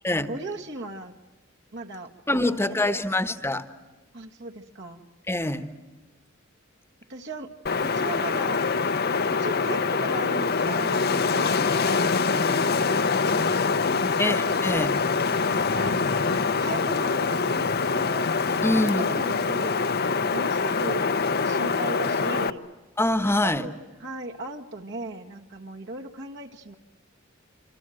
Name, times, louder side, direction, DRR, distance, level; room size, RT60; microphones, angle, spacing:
voice 1, 0.2-1.1 1.7-2.6 2.9-3.0 4.1-5.0 7.1-7.5 7.8-8.6 9.3-14.3 15.4-21.1 21.4-22.6 23.2-23.7 24.0-26.7, right 2 dB, 60° right, 2 dB, 1.7 m, -37 dB
voice 2, 2.3-3.6 5.3-5.7 14.2-15.0 18.6-19.0 23.0-23.7, left 1 dB, 10° left, 10 dB, 1.2 m, -24 dB
Wind, 7.7-22.5, left 4 dB, 50° left, 0.9 m, -24 dB
27.0 x 26.5 x 7.8 m, 1.2 s
head